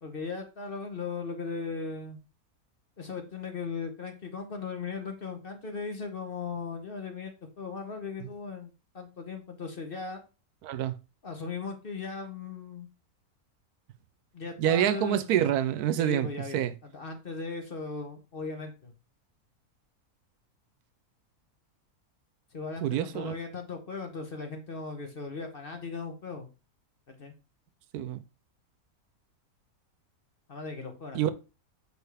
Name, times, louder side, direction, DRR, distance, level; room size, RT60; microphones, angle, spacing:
voice 1, 0.0-2.2 3.0-7.3 7.6-10.2 11.2-12.9 14.3-15.5 16.0-18.9 22.5-26.5 27.1-27.3 30.5-31.3, left 4 dB, 40° left, 1.0 m, -38 dB
voice 2, 10.6-10.9 14.6-16.3 16.5-16.7 22.8-23.3 27.9-28.2 31.1-31.3, right 11 dB, 85° right, 1.1 m, -26 dB
6.6 x 4.8 x 3.4 m
omnidirectional pair, 1.6 m